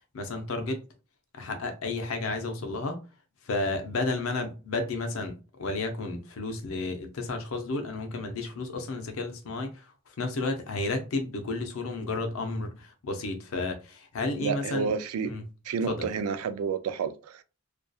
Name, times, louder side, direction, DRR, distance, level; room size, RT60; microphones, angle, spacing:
voice 1, 0.1-0.8 1.3-3.0 3.4-14.9 15.2-15.4 15.9-16.1, left 3 dB, 70° left, 0.6 m, -32 dB
voice 2, 14.4-15.3 15.7-17.4, right 5 dB, 85° right, 0.3 m, -30 dB
2.6 x 2.3 x 2.2 m
head